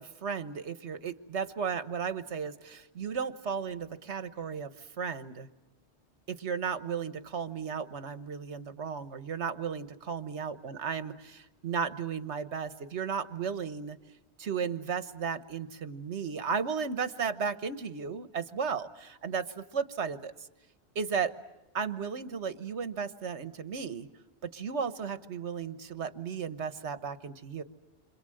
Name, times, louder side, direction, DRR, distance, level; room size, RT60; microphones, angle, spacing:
voice 1, 0.0-5.5 6.3-14.0 14.4-20.3 20.9-21.3 21.7-24.1 24.4-27.6, right 6 dB, 80° right, 11 dB, 1.5 m, -34 dB
28.5 x 26.0 x 7.8 m, 0.98 s
omnidirectional pair, 1.1 m